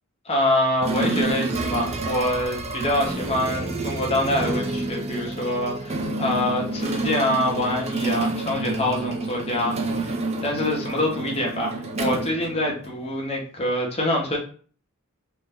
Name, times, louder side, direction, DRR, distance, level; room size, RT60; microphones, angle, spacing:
voice 1, 0.2-10.2 10.4-14.4, left 1 dB, 25° left, -1 dB, 0.7 m, -25 dB
sound 1, 0.8-13.1, right 2 dB, 30° right, 0.3 m, -29 dB
2.4 x 2.0 x 3.4 m, 0.43 s
head